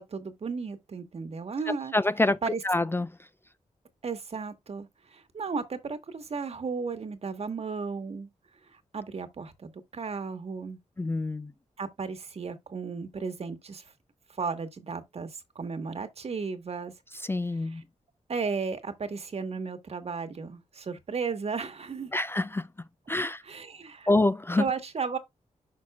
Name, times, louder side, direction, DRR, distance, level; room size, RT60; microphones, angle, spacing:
voice 1, 0.0-1.9 2.4-2.6 4.0-8.3 8.6-10.8 11.8-13.9 14.3-16.9 17.5-17.8 18.3-22.2 23.4-24.1 24.6-25.2, right 5 dB, 55° right, 1.4 m, -34 dB
voice 2, 1.9-2.4 2.6-3.1 11.0-11.5 17.2-17.8 22.1-22.7 23.1-23.4 24.1-24.6, left 2 dB, 20° left, 0.3 m, -26 dB
10.5 x 5.8 x 2.3 m
wide cardioid pair, 120°, 13 cm